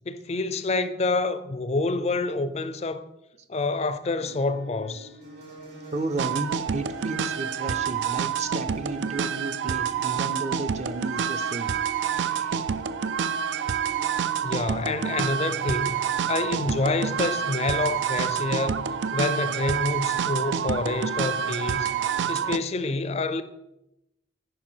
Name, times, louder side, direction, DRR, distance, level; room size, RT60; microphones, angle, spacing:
voice 1, 0.1-3.1 3.5-5.1 14.4-16.0 16.3-23.4, left 3 dB, 35° left, 0.5 m, -28 dB
sound 1, 4.2-22.4, right 1 dB, 60° right, 2.9 m, -45 dB
voice 2, 5.9-12.6 14.3-14.5, right 2 dB, 40° right, 0.6 m, -33 dB
sound 2, 6.2-22.6, right 7 dB, 85° right, 0.4 m, -28 dB
10.5 x 5.5 x 4.5 m
head